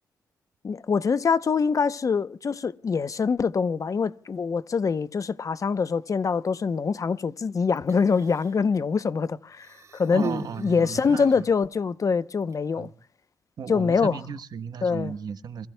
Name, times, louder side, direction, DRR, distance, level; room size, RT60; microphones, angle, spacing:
voice 1, 0.6-12.9 13.7-14.2 14.8-15.1, left 5 dB, 50° left, 0.8 m, -24 dB
Human voice, 7.8-8.7 9.6-11.5 12.4-12.6, right 4 dB, 45° right, 3.1 m, -38 dB
voice 2, 10.1-11.5 12.7-12.9 13.6-15.7, right 6 dB, 65° right, 1.1 m, -35 dB
29.0 x 21.5 x 2.3 m
cardioid pair, 65°, 7 cm